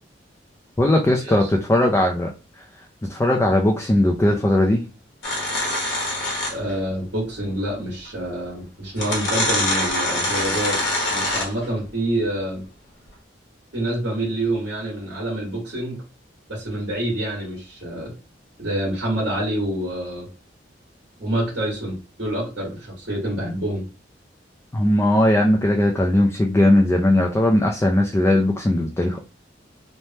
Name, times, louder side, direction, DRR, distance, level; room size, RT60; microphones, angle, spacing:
voice 1, 0.8-2.3 3.1-4.8 24.7-29.2, left 1 dB, 15° left, 1 dB, 0.3 m, -18 dB
sound 1, 5.2-6.8 8.1-8.2 8.9-11.7, left 1 dB, 90° left, 1.0 m, -24 dB
voice 2, 6.5-10.8 11.1-12.6 13.7-16.0 16.5-18.1 18.6-20.3 21.2-23.8, right 1 dB, 70° right, -5 dB, 1.5 m, -27 dB
3.2 x 2.1 x 2.7 m, 0.32 s
head